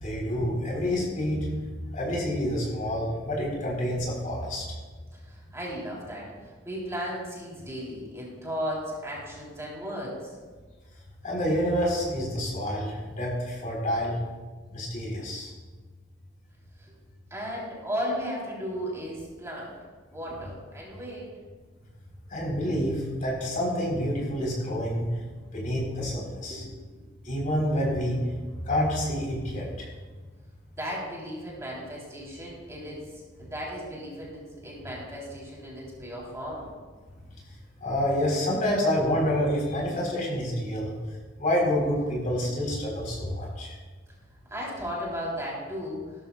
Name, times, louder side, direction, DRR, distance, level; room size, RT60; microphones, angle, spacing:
voice 1, 0.0-1.6 1.9-4.6 11.2-14.2 14.7-15.5 22.3-25.1 25.5-26.6 27.2-28.2 28.7-29.9 37.8-40.9 41.4-43.8, equal, 45° left, -3 dB, 4.1 m, -28 dB
voice 2, 5.1-10.4 16.8-16.9 17.3-19.8 20.1-21.3 26.5-26.7 30.8-36.7 44.5-46.3, equal, 15° right, -5 dB, 3.6 m, -35 dB
18.0 x 12.5 x 2.4 m, 1.4 s
head